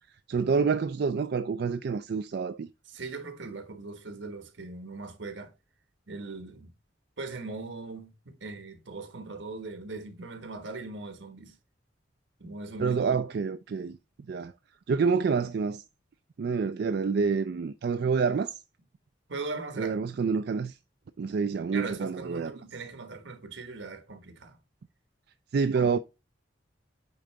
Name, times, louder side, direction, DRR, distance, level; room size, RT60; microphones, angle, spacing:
voice 1, 0.3-2.7 12.8-14.0 14.3-14.5 14.9-15.8 16.4-18.6 19.8-20.8 21.2-22.5 25.5-26.0, right 5 dB, 60° right, 0.3 m, -27 dB
voice 2, 2.9-5.5 6.1-6.7 7.2-11.6 12.4-13.2 19.3-20.0 21.7-24.6 25.7-26.0, right 3 dB, 85° right, 1.4 m, -40 dB
8.8 x 3.8 x 3.3 m
head